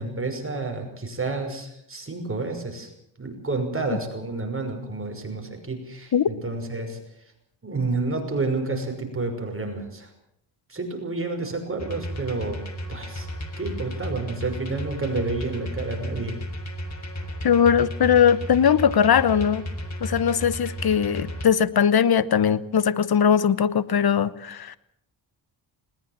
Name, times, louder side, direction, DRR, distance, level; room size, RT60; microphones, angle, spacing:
voice 1, 0.0-2.9 3.2-7.0 7.6-10.1 10.7-12.6 12.9-13.3 13.6-16.4, right 3 dB, 25° right, 3 dB, 5.9 m, -30 dB
sound 1, 11.8-21.5, equal, 35° left, 3.8 m, -34 dB
voice 2, 17.4-19.6 20.0-24.8, left 8 dB, 50° left, 17 dB, 1.1 m, -20 dB
21.0 x 20.0 x 7.5 m, 0.72 s
cardioid pair, 90°, 48 cm